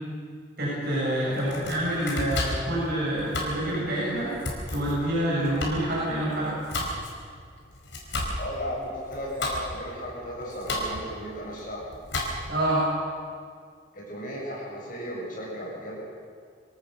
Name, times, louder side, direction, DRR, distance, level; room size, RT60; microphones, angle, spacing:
voice 1, 0.6-4.3 4.7-6.5 12.5-12.9, right 1 dB, 55° right, -7 dB, 7.2 m, -27 dB
voice 2, 1.2-1.6 8.4-11.8 13.9-16.0, equal, 45° left, -4 dB, 7.8 m, -35 dB
Domestic sounds home sounds, 1.3-12.7, left 1 dB, 75° left, 4.8 m, -34 dB
24.5 x 17.5 x 6.9 m, 2.1 s
head